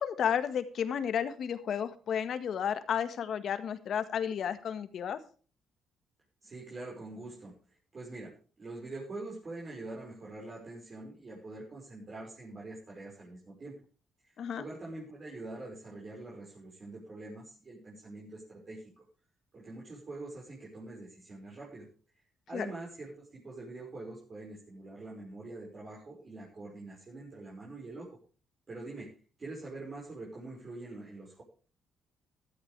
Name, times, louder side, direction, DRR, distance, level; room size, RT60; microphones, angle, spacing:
voice 1, 0.0-5.2 14.4-14.6 22.5-22.7, left 8 dB, 65° left, 10 dB, 1.5 m, -32 dB
voice 2, 6.4-7.5 7.9-8.3 8.6-13.7 14.2-19.0 19.5-21.9 22.5-28.1 28.7-29.1 29.4-31.4, right 2 dB, 40° right, -4 dB, 5.6 m, -44 dB
14.5 x 13.0 x 3.4 m, 0.38 s
cardioid pair, 90°, 0 cm